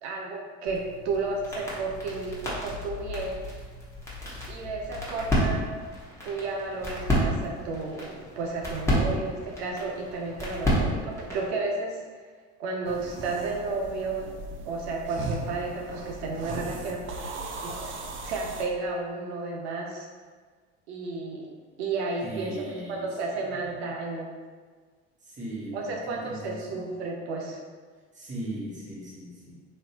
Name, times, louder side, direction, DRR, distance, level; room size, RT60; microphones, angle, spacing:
voice 1, 0.0-3.4 4.5-5.8 6.2-12.0 12.6-14.3 14.6-17.3 17.6-20.1 20.9-21.5 21.8-24.3 25.7-27.6, right 3 dB, 85° right, 0 dB, 0.5 m, -32 dB
sound 1, 0.7-11.5, equal, 10° left, 1.1 m, -31 dB
sound 2, 12.8-18.7, right 3 dB, 40° right, 0.5 m, -38 dB
voice 2, 22.2-23.5 25.2-27.0 28.1-29.5, right 1 dB, 25° right, -6 dB, 1.3 m, -38 dB
3.0 x 2.7 x 2.8 m, 1.5 s
hypercardioid pair, 80°, 32 cm